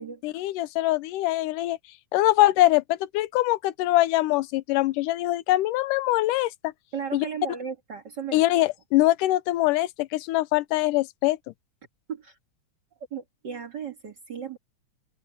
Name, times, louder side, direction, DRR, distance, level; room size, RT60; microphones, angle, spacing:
voice 1, 0.2-1.8 2.1-6.7 7.1-7.3 8.3-11.4, left 16 dB, 90° left, 2.2 m, -23 dB
voice 2, 6.9-8.4 12.1-12.3 12.9-14.6, right 7 dB, 40° right, 1.8 m, -35 dB
omnidirectional pair, 3.7 m